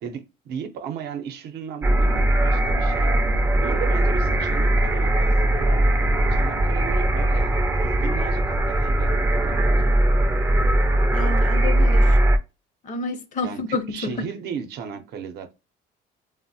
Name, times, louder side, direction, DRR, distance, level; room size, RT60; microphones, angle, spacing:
voice 1, 0.0-3.1 3.6-5.8 6.3-9.9 13.4-15.5, right 7 dB, 75° right, 0.6 m, -35 dB
sound 1, 1.8-12.4, right 1 dB, 15° right, 0.4 m, -20 dB
voice 2, 11.1-12.2 12.8-14.3, left 3 dB, 45° left, 0.7 m, -29 dB
3.1 x 2.1 x 2.6 m
cardioid pair, 110°, 17 cm